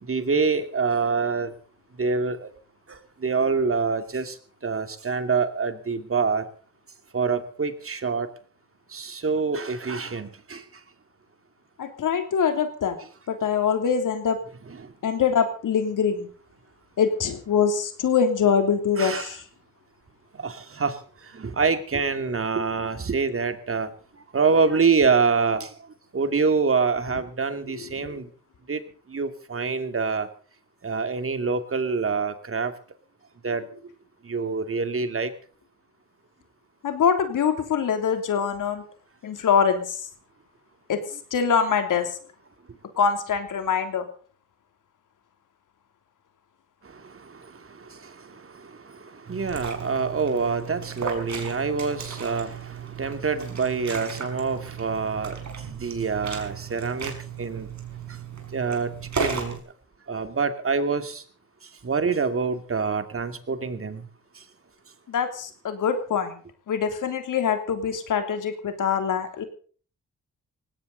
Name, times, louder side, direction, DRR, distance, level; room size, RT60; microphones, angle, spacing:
voice 1, 0.0-1.5 2.0-2.5 2.9-4.4 4.6-6.5 7.1-8.3 8.9-10.6 14.6-14.9 19.0-19.3 20.3-23.9 24.3-25.7 26.1-28.3 28.7-28.8 29.1-30.3 30.8-32.7 33.4-33.8 34.2-35.3 46.8-57.7 58.1-58.2 58.5-59.6 60.1-61.2 61.8-64.1 64.3-64.4, right 5 dB, 45° right, 9 dB, 2.6 m, -26 dB
voice 2, 11.8-13.0 13.3-14.4 15.0-16.3 17.0-19.4 28.0-28.1 36.8-38.8 39.2-40.1 40.9-41.0 41.3-42.1 43.0-44.1 65.1-66.4 66.7-69.4, left 7 dB, 80° left, 7 dB, 3.2 m, -24 dB
Liquid, 49.3-59.6, right 6 dB, 65° right, 5.5 m, -35 dB
19.0 x 17.5 x 4.1 m, 0.41 s
cardioid pair, 60°, 31 cm